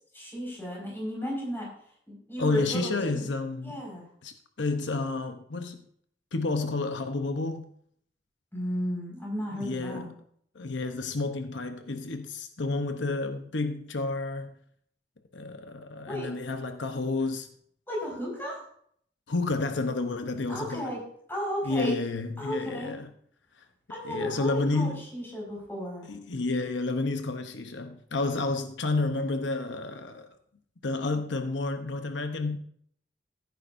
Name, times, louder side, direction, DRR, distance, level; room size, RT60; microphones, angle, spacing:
voice 1, 0.1-1.7 2.1-3.2 3.6-4.0 8.5-10.1 16.1-16.3 17.9-18.6 20.5-21.0 21.3-21.9 22.4-22.9 23.9-26.1, equal, 15° left, 5.2 m, -34 dB
voice 2, 2.4-3.8 4.2-5.9 6.3-7.7 9.5-10.1 10.5-14.6 15.3-17.5 19.3-20.9 21.6-23.1 23.6-23.7 24.0-25.0 26.1-30.4 30.8-32.6, left 3 dB, 90° left, 0.9 m, -30 dB
15.5 x 9.4 x 2.6 m
head